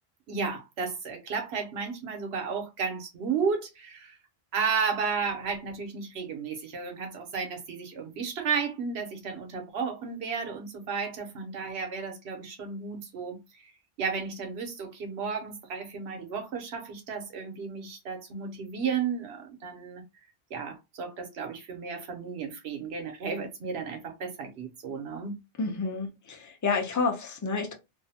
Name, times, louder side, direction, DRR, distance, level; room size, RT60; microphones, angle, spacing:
voice 1, 0.3-4.2 4.5-13.7 14.0-20.0 20.5-25.4, right 5 dB, 80° right, 1.0 m, -33 dB
voice 2, 25.6-27.7, left 4 dB, 30° left, 0.4 m, -29 dB
2.6 x 2.0 x 2.7 m
omnidirectional pair, 1.1 m